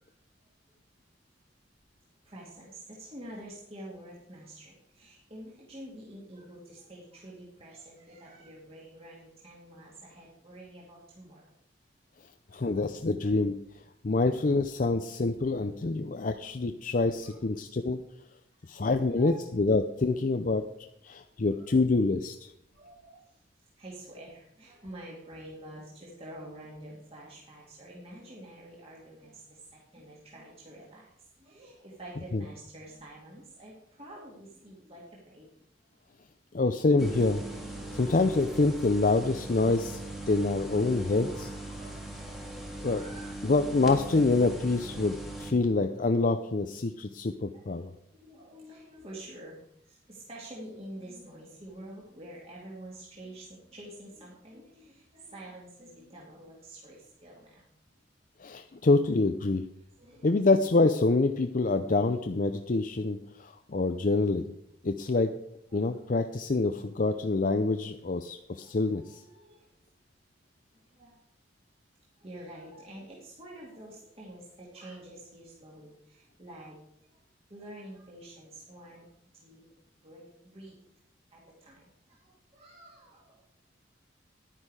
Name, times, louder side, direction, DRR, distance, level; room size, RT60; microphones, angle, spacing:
voice 1, 2.3-11.5 17.2-17.3 19.0-19.4 21.3-21.7 22.7-23.2 23.8-31.1 31.4-35.5 41.2-43.6 47.5-49.6 49.9-57.6 60.0-60.4 65.7-66.1 67.0-67.3 68.5-69.7 70.9-71.2 72.2-76.8 77.1-77.2 77.5-79.1 79.4-79.6 80.0-80.8 81.3-81.8 82.1-83.4, right 1 dB, 35° right, -5 dB, 2.3 m, -48 dB
voice 2, 12.5-13.6 14.0-18.0 18.7-20.6 21.0-22.3 32.3-32.4 36.5-37.4 37.9-40.0 40.3-41.5 42.8-43.0 43.4-47.9 58.4-59.6 60.2-64.5 64.8-65.3 65.7-69.2, left 3 dB, 45° left, 7 dB, 0.6 m, -26 dB
sound 1, 37.0-45.5, right 2 dB, ahead, 1.8 m, -39 dB
11.0 x 9.9 x 4.8 m, 0.74 s
head